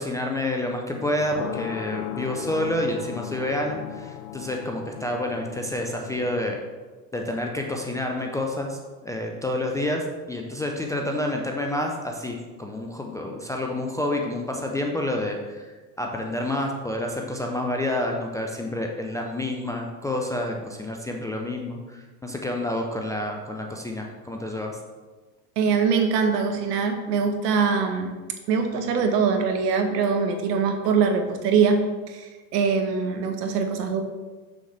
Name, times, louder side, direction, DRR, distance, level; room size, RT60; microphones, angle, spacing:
voice 1, 0.0-6.6 7.1-24.8, left 1 dB, 5° left, 1 dB, 0.4 m, -29 dB
sound 1, 1.0-6.6, left 12 dB, 70° left, 0.6 m, -37 dB
voice 2, 25.6-28.1 28.5-31.8 32.1-34.0, right 5 dB, 70° right, 6 dB, 1.2 m, -23 dB
6.9 x 6.5 x 3.3 m, 1.3 s
hypercardioid pair, 95°, 49 cm